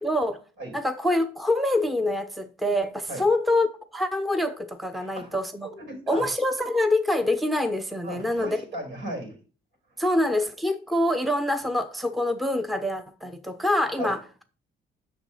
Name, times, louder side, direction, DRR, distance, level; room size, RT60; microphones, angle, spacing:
voice 1, 0.0-0.4 0.7-5.7 6.1-8.6 10.0-14.4, left 1 dB, ahead, 0.7 m, -25 dB
voice 2, 4.9-5.4 5.6-6.3 8.0-9.4 10.0-10.1 14.0-14.2, right 1 dB, 70° right, 5.4 m, -36 dB
7.0 x 6.3 x 5.5 m
cardioid pair, 90°, 20 cm